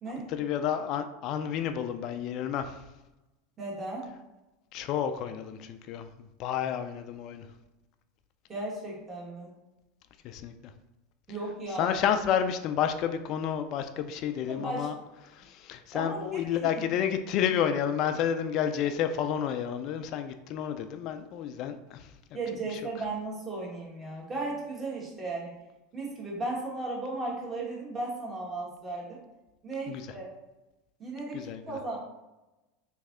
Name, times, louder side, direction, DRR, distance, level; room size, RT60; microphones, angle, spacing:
voice 1, 0.3-2.8 4.7-6.1 6.4-7.5 10.2-10.5 11.8-14.9 15.3-22.1 22.7-22.8 29.9-30.1 31.3-31.8, left 9 dB, 50° left, 8 dB, 0.3 m, -30 dB
voice 2, 3.6-4.0 8.5-9.5 11.3-12.1 14.5-14.9 15.9-16.7 22.3-25.5 25.9-29.2 29.6-30.3 31.0-32.0, right 2 dB, 25° right, -4 dB, 1.5 m, -35 dB
3.1 x 2.6 x 3.6 m, 1.0 s
hypercardioid pair, 105°, 0 cm